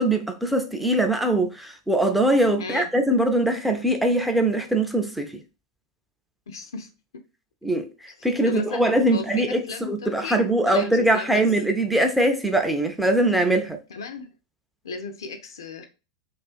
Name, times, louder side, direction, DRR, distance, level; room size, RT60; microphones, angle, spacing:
voice 1, 0.0-5.3 7.6-7.9 8.2-9.6 9.9-13.8, right 1 dB, ahead, 0.4 m, -22 dB
voice 2, 2.6-2.9 6.5-6.9 8.4-8.8 9.1-11.4 13.9-14.3 14.8-15.9, left 4 dB, 65° left, 0.4 m, -35 dB
2.4 x 2.3 x 2.3 m
figure-of-eight pair, 90°, 2 cm